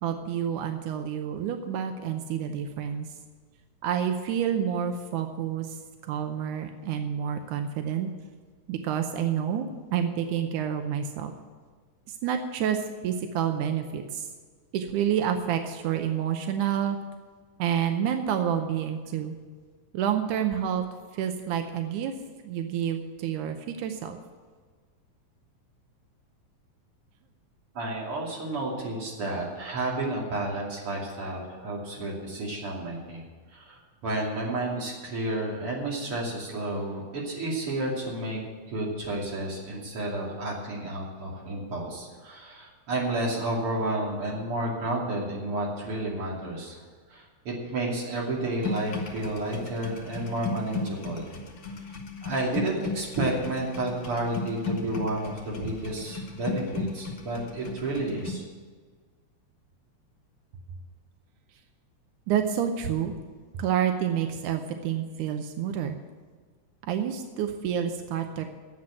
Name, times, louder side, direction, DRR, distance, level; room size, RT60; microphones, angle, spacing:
voice 1, 0.0-3.1 3.8-5.8 6.0-8.1 8.7-11.3 12.1-14.3 14.7-17.0 17.6-19.4 19.9-20.9 21.1-22.1 22.4-24.2 62.3-63.1 63.6-66.0 66.9-68.5, right 9 dB, 90° right, 6 dB, 2.3 m, -28 dB
voice 2, 27.8-33.2 33.5-38.4 38.7-46.8 47.1-51.3 52.2-58.4, right 1 dB, 50° right, -3 dB, 3.4 m, -31 dB
sound 1, 48.6-58.3, left 3 dB, 45° left, 1.7 m, -35 dB
10.0 x 7.7 x 9.7 m, 1.5 s
omnidirectional pair, 3.4 m